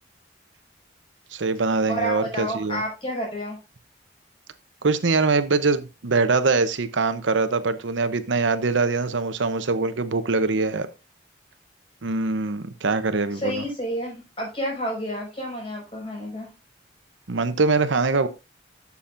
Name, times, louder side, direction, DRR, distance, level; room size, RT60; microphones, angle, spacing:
voice 1, 1.3-2.8 4.8-10.9 12.0-13.6 17.3-18.3, right 3 dB, 80° right, 11 dB, 0.8 m, -23 dB
voice 2, 1.9-3.6 13.3-16.5, equal, 30° left, -1 dB, 5.4 m, -30 dB
11.5 x 7.1 x 2.5 m, 0.27 s
head